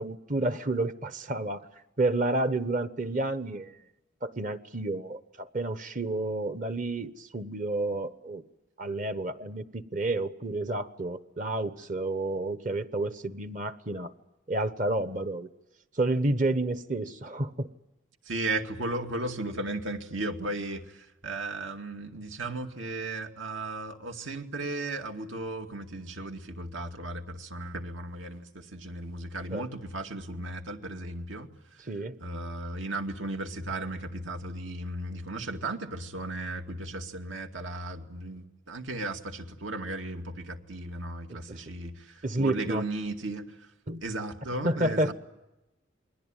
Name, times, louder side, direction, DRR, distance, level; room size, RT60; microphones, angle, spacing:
voice 1, 0.0-1.6 2.0-3.8 4.2-8.4 8.8-14.1 14.5-15.5 15.9-17.7 29.5-29.6 31.9-32.2 41.3-41.6 42.2-42.8 43.9-44.0 44.6-45.1, right 2 dB, 40° right, 11 dB, 1.1 m, -30 dB
voice 2, 18.3-31.8 32.2-43.7 44.0-45.1, right 2 dB, 75° right, 5 dB, 2.4 m, -35 dB
28.5 x 22.0 x 9.0 m, 0.98 s
head